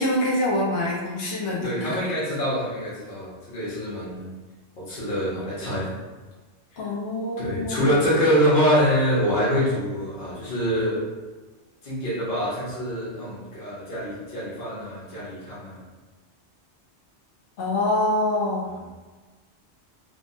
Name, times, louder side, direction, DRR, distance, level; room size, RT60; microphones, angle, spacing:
voice 1, 0.0-2.0 6.8-8.0 17.6-18.7, left 1 dB, 85° left, -5 dB, 1.0 m, -25 dB
voice 2, 1.6-4.3 4.8-5.9 7.4-11.0 11.8-15.8, equal, 50° left, -9 dB, 1.1 m, -25 dB
3.3 x 2.1 x 2.6 m, 1.3 s
omnidirectional pair, 1.1 m